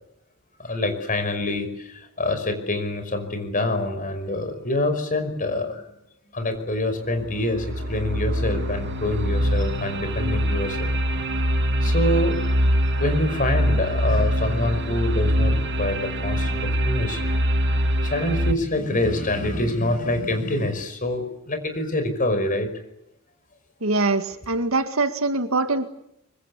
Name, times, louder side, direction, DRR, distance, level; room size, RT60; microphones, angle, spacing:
voice 1, 0.6-5.9 6.3-10.9 11.8-12.6 13.0-17.4 18.0-22.7, left 1 dB, 40° left, 8 dB, 5.4 m, -26 dB
sound 1, 6.5-6.6 7.2-18.5, equal, 55° right, 2.4 m, -23 dB
voice 2, 23.8-25.9, right 3 dB, 85° right, 8 dB, 2.1 m, -23 dB
24.5 x 24.5 x 8.4 m, 0.79 s
head